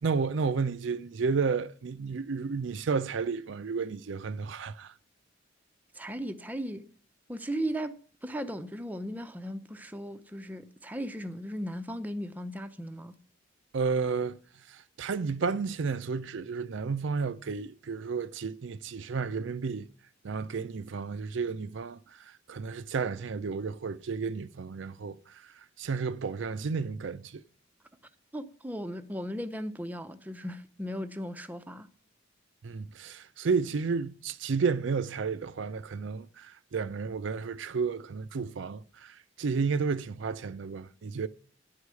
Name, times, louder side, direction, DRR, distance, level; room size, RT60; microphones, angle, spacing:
voice 1, 0.0-4.9 13.7-14.4 14.7-19.9 20.2-25.4 25.8-27.4 32.6-41.3, right 5 dB, 65° right, 0.4 m, -32 dB
voice 2, 5.9-6.9 7.3-13.1 28.3-31.9, equal, 10° right, 0.6 m, -37 dB
10.5 x 4.8 x 8.1 m
head